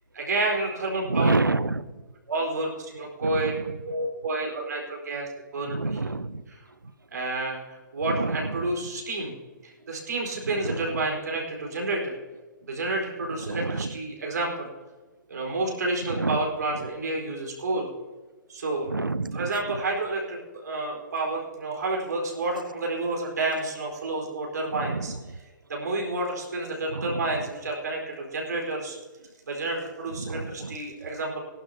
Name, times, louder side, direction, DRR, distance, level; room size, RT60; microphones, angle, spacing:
voice 1, 0.1-1.3 2.3-3.5 3.8-6.0 6.5-6.6 7.1-9.3 9.6-12.2 12.6-14.7 15.3-17.9 18.5-18.9 19.3-25.4 25.7-29.0 29.5-31.4, right 2 dB, 60° right, -1 dB, 4.5 m, -30 dB
voice 2, 1.1-1.8 3.2-3.5 5.7-6.4 8.2-8.4 13.5-13.9 16.2-16.4 18.9-19.5 24.8-25.0 30.2-30.4, right 3 dB, 85° right, 17 dB, 0.6 m, -26 dB
21.0 x 12.0 x 2.9 m, 1.3 s
figure-of-eight pair, 120°, 11 cm